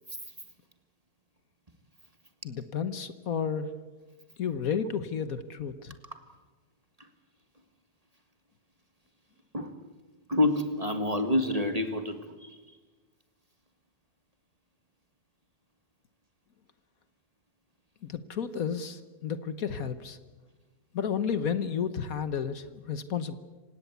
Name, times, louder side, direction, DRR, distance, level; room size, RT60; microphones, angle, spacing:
voice 1, 2.4-3.7 4.4-5.9 18.0-20.2 20.9-23.3, left 7 dB, 65° left, 12 dB, 1.5 m, -32 dB
voice 2, 10.3-12.6, left 1 dB, 25° right, 7 dB, 1.7 m, -28 dB
27.0 x 17.5 x 8.2 m, 1.3 s
omnidirectional pair, 1.7 m